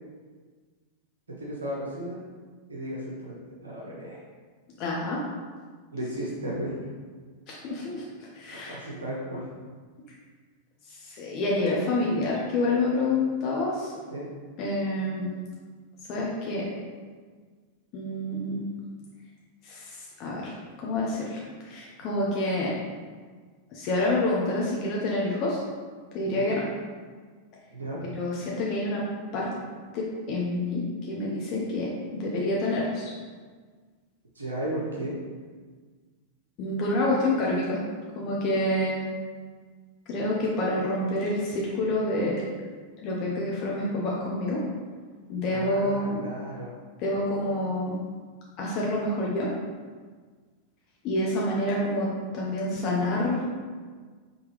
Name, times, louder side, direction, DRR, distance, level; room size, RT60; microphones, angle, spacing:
voice 1, 1.3-2.2 2.7-3.4 3.6-4.2 5.9-6.7 8.7-9.5 14.1-14.3 26.3-26.5 27.7-28.0 34.4-35.2 45.5-46.7, right 1 dB, 80° right, -4 dB, 0.9 m, -34 dB
voice 2, 4.8-5.2 7.5-8.0 8.3-8.9 10.9-13.9 14.6-15.3 16.1-16.7 17.9-18.7 19.6-20.5 20.8-22.7 23.7-25.6 26.1-26.6 28.0-29.0 29.3-29.5 29.9-30.8 31.1-33.1 36.6-37.8 38.1-39.0 40.1-42.4 43.0-44.6 45.3-46.3 47.0-48.0 48.6-49.5 51.0-52.1 52.3-53.5, left 1 dB, 45° left, -4 dB, 0.8 m, -28 dB
5.2 x 3.2 x 3.2 m, 1.5 s
figure-of-eight pair, 90°, 0 cm